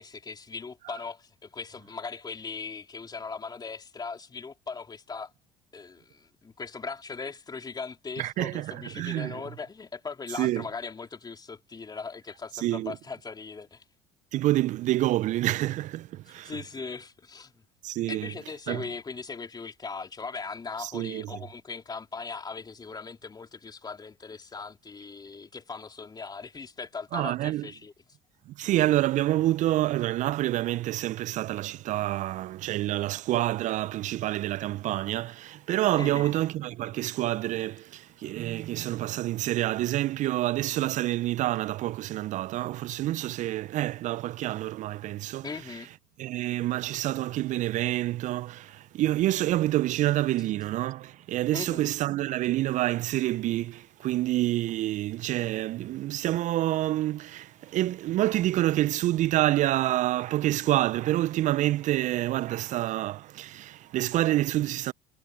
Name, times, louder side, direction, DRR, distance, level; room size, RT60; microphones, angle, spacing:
voice 1, 0.0-5.3 5.7-13.8 16.3-17.6 18.1-27.9 36.0-36.3 45.4-45.9 51.5-51.9, left 4 dB, 25° left, 3.3 m, -39 dB
voice 2, 8.2-9.4 10.3-10.6 12.5-13.0 14.3-16.6 17.8-18.3 18.7-18.8 20.8-21.3 27.1-27.7 28.5-45.5 46.2-64.9, right 15 dB, 50° right, 0.8 m, -27 dB
hypercardioid pair, 65°, 16 cm